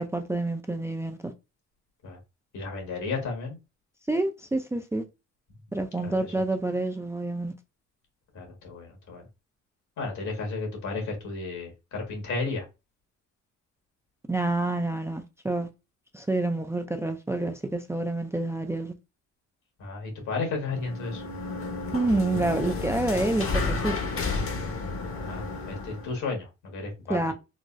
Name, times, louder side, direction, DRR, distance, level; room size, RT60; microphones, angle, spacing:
voice 1, 0.0-1.3 4.1-5.0 5.7-7.5 14.3-15.7 16.1-18.9 21.9-24.0 27.1-27.3, right 2 dB, 10° right, 0.3 m, -28 dB
voice 2, 2.5-3.6 6.0-6.3 8.3-9.3 10.0-12.7 19.8-21.2 25.1-27.2, left 3 dB, 75° left, 1.6 m, -33 dB
sound 1, 20.6-26.2, left 3 dB, 45° left, 0.9 m, -31 dB
3.9 x 2.0 x 2.5 m
cardioid pair, 90°, 30 cm